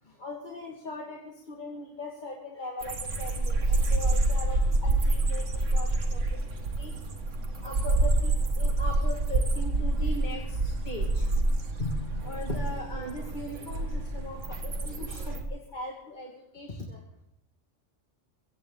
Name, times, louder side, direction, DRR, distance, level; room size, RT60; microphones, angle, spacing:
voice 1, 0.0-6.9 7.6-11.4 11.8-17.0, left 2 dB, 35° left, 0 dB, 2.0 m, -39 dB
sound 1, 2.8-15.4, right 2 dB, 70° right, 1.9 m, -27 dB
23.5 x 16.0 x 3.8 m, 0.81 s
omnidirectional pair, 1.3 m